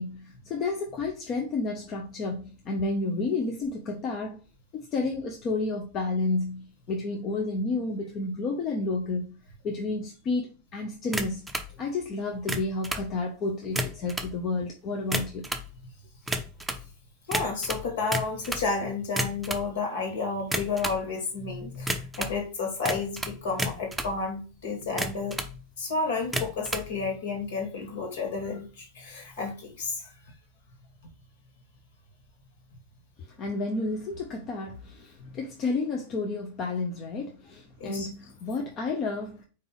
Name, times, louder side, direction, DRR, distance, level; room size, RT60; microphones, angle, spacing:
voice 1, 0.0-4.4 4.7-9.4 9.6-11.5 11.8-15.5 33.4-39.4, left 3 dB, 35° left, 1.1 m, -31 dB
sound 1, 11.1-11.7 12.3-13.1 13.6-14.3 15.0-15.7 16.3-16.9 17.3-18.7 19.1-19.7 20.4-21.0 21.9-22.4 22.8-24.2 24.8-25.5 26.2-26.9, right 1 dB, 5° right, 0.8 m, -31 dB
voice 2, 17.3-30.1 35.2-35.3 37.8-38.1, left 4 dB, 55° left, 2.7 m, -31 dB
5.5 x 4.5 x 3.8 m
figure-of-eight pair, 90°, 0 cm